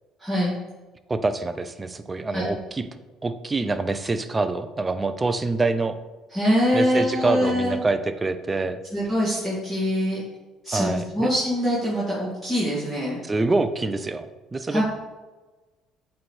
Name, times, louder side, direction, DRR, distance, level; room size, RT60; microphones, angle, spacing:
voice 1, 0.2-0.5 2.3-2.5 6.3-7.8 8.9-10.2 10.6-13.2 14.7-14.8, equal, ahead, -10 dB, 2.1 m, -24 dB
voice 2, 1.1-2.9 3.2-5.9 6.7-8.8 10.7-11.3 13.2-14.8, right 3 dB, 20° right, 10 dB, 0.4 m, -25 dB
8.4 x 3.2 x 4.4 m, 1.2 s
cardioid pair, 130°, 0 cm